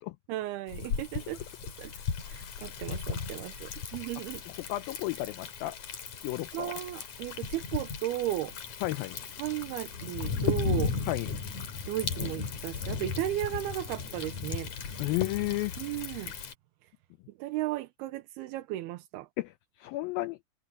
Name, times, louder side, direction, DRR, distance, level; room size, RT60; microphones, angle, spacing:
voice 1, 0.3-1.4 1.8-1.9 2.3-4.4 6.5-8.8 9.4-10.9 11.9-14.7 15.8-16.3 17.4-19.3, right 14 dB, 80° right, 2.7 m, -35 dB
Thunder, 0.7-16.5, left 5 dB, 50° left, 3.4 m, -36 dB
voice 2, 4.6-5.8 6.2-6.7 8.8-9.2 11.1-11.3 15.0-15.7 19.4-20.4, left 17 dB, 85° left, 2.1 m, -33 dB
omnidirectional pair, 4.9 m